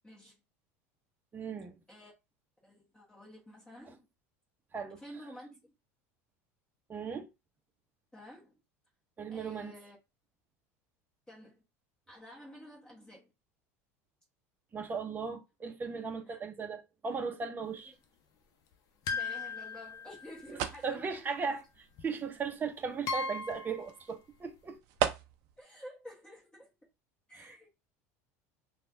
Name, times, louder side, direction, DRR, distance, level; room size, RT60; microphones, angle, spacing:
voice 1, 0.0-0.3 1.9-2.1 2.6-4.0 5.0-5.7 8.1-8.5 9.3-10.0 11.3-11.6 12.1-13.3 16.3-16.4 19.1-21.6 25.6-26.7 27.3-27.7, equal, 10° left, 1.2 m, -51 dB
voice 2, 1.3-1.8 4.7-5.0 6.9-7.3 9.2-9.7 14.7-17.9 20.8-21.6 22.0-24.8 27.4-27.7, right 5 dB, 25° right, 0.7 m, -37 dB
sound 1, 19.1-20.6 22.0-22.1 23.1-23.9, left 4 dB, 50° left, 0.7 m, -37 dB
sound 2, 19.2-25.6, right 10 dB, 60° right, 0.5 m, -40 dB
3.1 x 2.3 x 2.7 m
hypercardioid pair, 90°, 8 cm